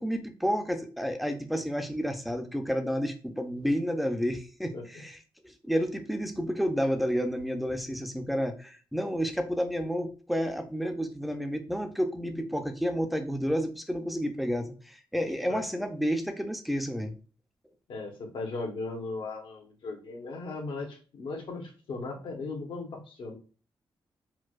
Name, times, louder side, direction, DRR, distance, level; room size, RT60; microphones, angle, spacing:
voice 1, 0.0-5.2 5.4-17.1, equal, ahead, 5 dB, 0.5 m, -30 dB
voice 2, 17.9-23.4, left 3 dB, 70° left, 1 dB, 1.0 m, -37 dB
4.5 x 2.1 x 2.4 m, 0.37 s
wide cardioid pair, 115°, 9 cm